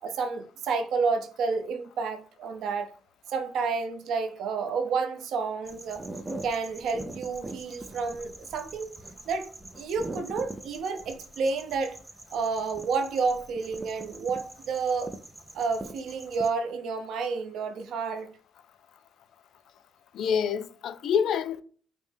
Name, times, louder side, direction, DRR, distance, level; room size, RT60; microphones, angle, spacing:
voice 1, 0.0-2.9 3.3-6.1 6.4-9.0 9.3-9.5 9.8-12.0 12.3-15.1 15.5-18.4, right 4 dB, 80° right, 0.6 m, -30 dB
sound 1, 5.7-16.5, right 2 dB, 15° right, 0.5 m, -43 dB
voice 2, 20.1-21.6, left 7 dB, 75° left, 0.3 m, -27 dB
5.2 x 2.0 x 3.3 m
cardioid pair, 90°, 0 cm